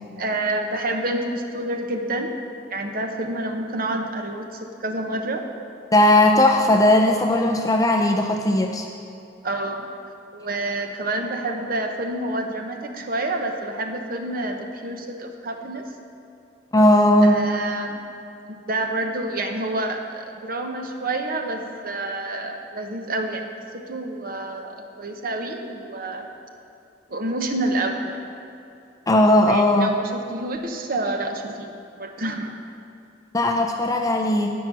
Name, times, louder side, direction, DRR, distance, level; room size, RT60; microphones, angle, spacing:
voice 1, 0.2-2.3 2.7-5.4 9.4-9.9 10.3-15.9 17.2-18.0 18.5-26.3 27.1-28.3 29.5-31.7 32.0-32.6, right 2 dB, 50° right, 4 dB, 1.0 m, -28 dB
voice 2, 5.9-8.9 16.7-17.4 29.1-29.9 33.3-34.5, left 1 dB, 20° left, 2 dB, 0.5 m, -17 dB
16.5 x 5.9 x 6.1 m, 2.7 s
head